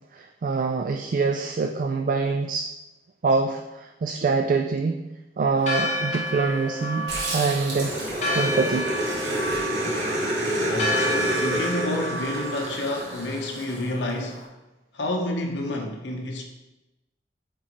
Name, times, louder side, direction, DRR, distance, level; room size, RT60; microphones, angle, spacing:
voice 1, 0.1-2.7 3.2-5.0 5.4-8.0 8.3-8.9, right 4 dB, 50° right, 0.3 m, -25 dB
Church bell, 5.6-14.5, equal, 40° left, 0.9 m, -31 dB
Growling, 7.1-13.8, right 1 dB, 65° right, 1.6 m, -28 dB
voice 2, 10.6-14.5 14.9-16.4, left 1 dB, 85° left, 0.9 m, -29 dB
8.2 x 3.8 x 3.1 m
head